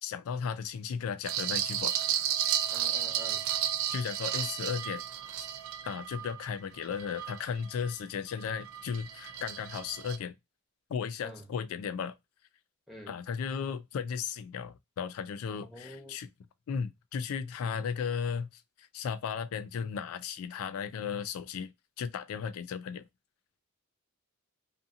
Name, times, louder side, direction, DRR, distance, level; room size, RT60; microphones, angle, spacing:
voice 1, 0.0-1.9 3.9-5.0 5.8-10.3 10.9-12.1 13.1-16.3 16.7-18.6 18.9-23.1, left 6 dB, 75° left, 0.3 m, -35 dB
sound 1, 1.2-7.9 8.4-10.2, right 10 dB, 70° right, 0.3 m, -33 dB
voice 2, 2.7-3.5 11.2-11.5 12.9-13.2 15.6-16.2, equal, ahead, 0.9 m, -48 dB
2.6 x 2.5 x 2.4 m
head